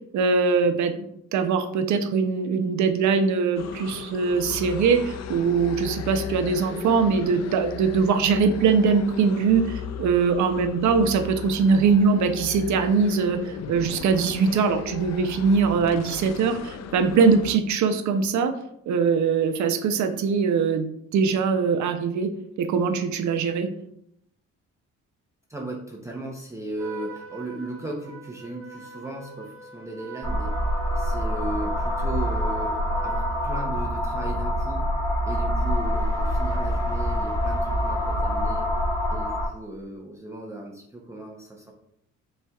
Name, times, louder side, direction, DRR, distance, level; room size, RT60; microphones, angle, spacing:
voice 1, 0.1-18.5 18.9-22.3 22.6-23.7, right 5 dB, 70° right, 8 dB, 0.6 m, -22 dB
sound 1, 3.6-17.6, left 8 dB, 60° left, 0.4 m, -36 dB
voice 2, 25.5-30.6 30.9-34.9 35.2-38.7 39.1-41.7, right 1 dB, 10° right, -2 dB, 0.7 m, -36 dB
Trumpet, 26.8-33.7, right 5 dB, 45° right, 0.9 m, -43 dB
sound 2, 30.2-39.5, equal, 10° left, 1.7 m, -25 dB
5.4 x 3.3 x 2.3 m, 0.74 s
cardioid pair, 90°, 30 cm